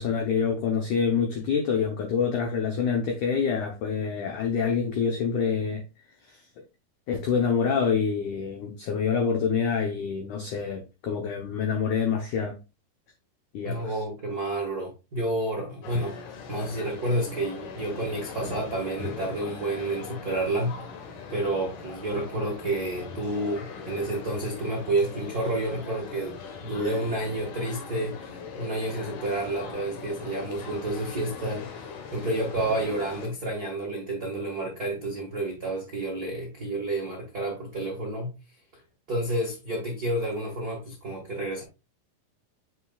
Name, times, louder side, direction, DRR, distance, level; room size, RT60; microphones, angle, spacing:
voice 1, 0.0-5.8 6.3-6.6 7.1-12.6 13.5-14.0, left 6 dB, 80° left, 1.7 m, -26 dB
voice 2, 13.6-16.1 16.5-20.8 21.3-38.3 39.1-41.6, right 1 dB, 65° right, 0.9 m, -30 dB
sound 1, 15.8-33.3, left 5 dB, 65° left, 2.3 m, -40 dB
7.3 x 6.6 x 2.4 m
omnidirectional pair, 4.9 m